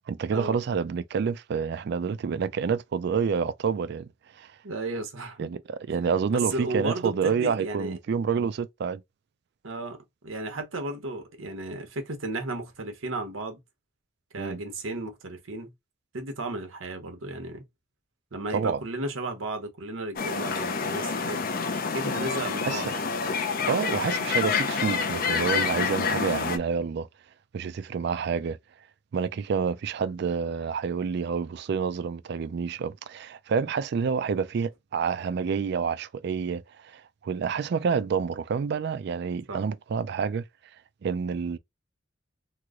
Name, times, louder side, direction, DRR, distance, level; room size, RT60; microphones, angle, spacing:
voice 1, 0.1-4.1 4.3-4.5 5.4-9.0 14.4-14.6 18.5-18.8 22.7-23.0 23.7-27.1 27.5-28.6 29.1-40.4 41.0-41.6, right 6 dB, 55° right, 0.3 m, -28 dB
voice 2, 4.6-5.5 6.3-7.9 9.6-13.6 14.3-15.7 16.1-17.6 18.3-21.4 21.9-22.9 39.5-39.6, right 2 dB, 90° right, 1.0 m, -34 dB
sound 1, 20.2-26.6, left 5 dB, 45° left, 0.5 m, -28 dB
3.1 x 2.1 x 3.7 m
head